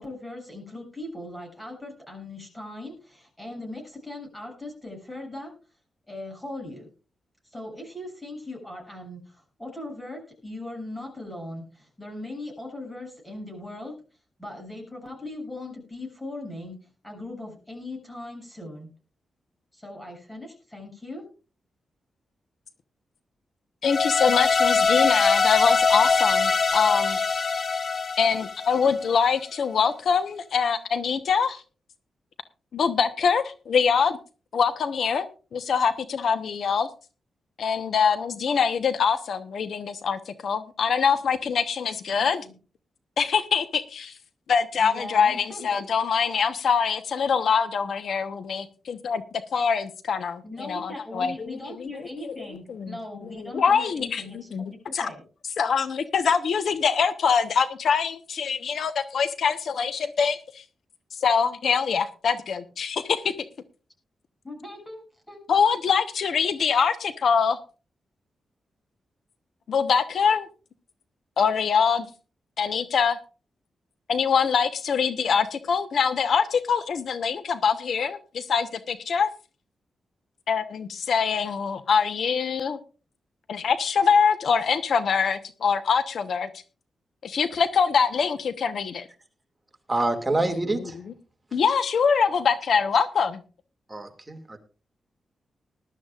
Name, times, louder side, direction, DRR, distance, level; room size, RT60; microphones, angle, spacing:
voice 1, 0.0-5.5 6.1-6.9 7.5-13.9 14.4-16.8 17.0-18.9 19.7-21.2 42.1-42.5 44.8-45.8 50.4-54.5 55.0-55.2 64.4-65.4, left 1 dB, 10° left, 1 dB, 7.5 m, -39 dB
voice 2, 23.8-27.2 28.2-31.6 32.7-34.2 34.5-36.9 37.6-42.4 43.2-44.1 44.5-49.2 49.5-53.0 53.3-55.1 55.6-60.6 61.2-63.3 65.5-67.6 69.7-70.5 71.4-72.1 72.6-73.2 74.1-79.3 80.5-82.8 83.5-86.5 87.2-89.1 91.5-93.4, left 6 dB, 70° left, 11 dB, 1.0 m, -24 dB
sound 1, 23.8-29.1, left 4 dB, 40° left, 0.7 m, -22 dB
voice 3, 89.9-91.0 93.9-94.6, right 2 dB, 15° right, 5 dB, 2.3 m, -26 dB
20.0 x 12.0 x 2.5 m, 0.34 s
wide cardioid pair, 110°, 0 cm